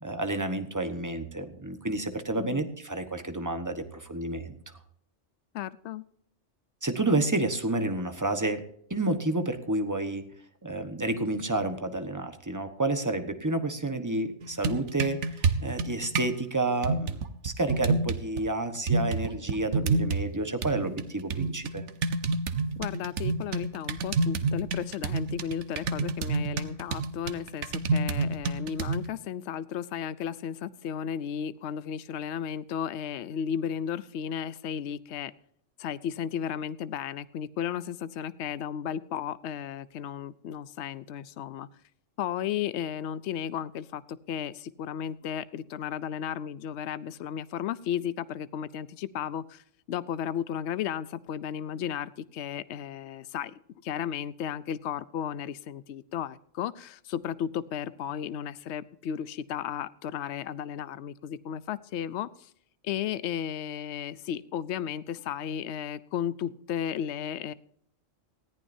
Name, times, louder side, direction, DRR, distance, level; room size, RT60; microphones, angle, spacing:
voice 1, 0.0-4.6 6.8-8.6 8.9-10.3 10.6-21.8, right 2 dB, 15° right, 7 dB, 1.2 m, -30 dB
voice 2, 2.3-2.7 5.5-6.0 22.8-35.3 35.8-41.7 42.2-49.6 49.9-53.5 53.8-62.5 62.8-67.5, left 9 dB, 65° left, 16 dB, 0.9 m, -34 dB
sound 1, 14.4-16.4 16.8-18.4 18.9-20.3 20.6-29.1, right 3 dB, 65° right, 1.2 m, -29 dB
19.5 x 14.5 x 2.7 m, 0.68 s
omnidirectional pair, 1.3 m